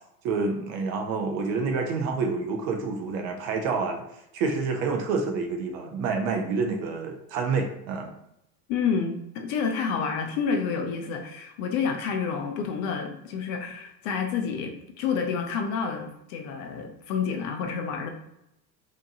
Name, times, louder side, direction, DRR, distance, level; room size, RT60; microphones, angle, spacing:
voice 1, 0.2-4.0 4.3-8.1, right 4 dB, 35° right, 4 dB, 0.4 m, -28 dB
voice 2, 8.7-18.1, left 6 dB, 40° left, 4 dB, 0.5 m, -29 dB
2.7 x 2.1 x 2.7 m, 0.84 s
figure-of-eight pair, 80°, 49 cm